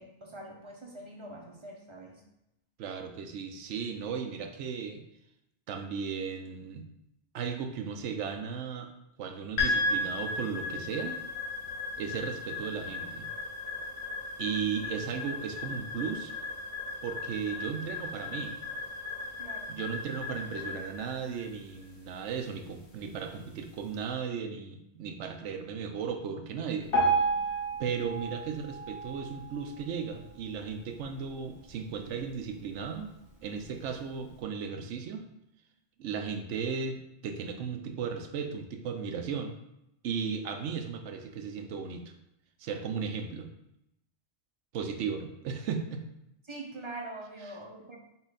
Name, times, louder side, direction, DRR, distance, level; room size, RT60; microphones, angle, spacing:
voice 1, 0.0-2.2 19.4-19.8 46.5-48.0, right 2 dB, 35° right, -1 dB, 0.5 m, -44 dB
voice 2, 2.8-5.0 5.7-6.9 7.3-8.9 9.2-11.2 12.0-13.3 14.4-16.3 17.0-18.6 19.7-26.9 27.8-33.1 33.4-35.2 36.0-39.6 40.0-42.1 42.6-43.5 44.7-46.0 47.5-47.6, right 6 dB, 85° right, 5 dB, 0.9 m, -36 dB
sound 1, 9.6-23.9, left 2 dB, 65° left, 1.3 m, -36 dB
Piano, 26.9-30.0 30.5-30.7 31.0-31.1 31.8-31.9 32.5-32.6, right 3 dB, 50° left, 1.7 m, -30 dB
5.7 x 2.4 x 4.0 m, 0.84 s
omnidirectional pair, 1.2 m